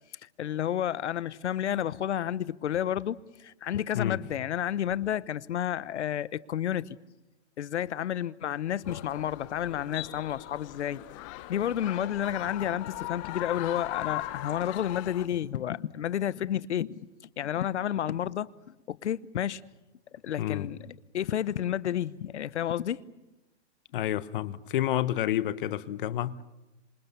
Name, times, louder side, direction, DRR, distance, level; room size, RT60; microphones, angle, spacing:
voice 1, 0.2-7.0 7.6-11.0 11.5-17.1 17.4-19.6 20.1-23.0, left 10 dB, 75° left, 1.0 m, -31 dB
sound 1, 8.8-15.3, left 16 dB, 30° left, 1.0 m, -39 dB
voice 2, 23.9-26.4, left 12 dB, 50° left, 1.2 m, -29 dB
27.5 x 27.0 x 6.9 m
hypercardioid pair, 155°, 35 cm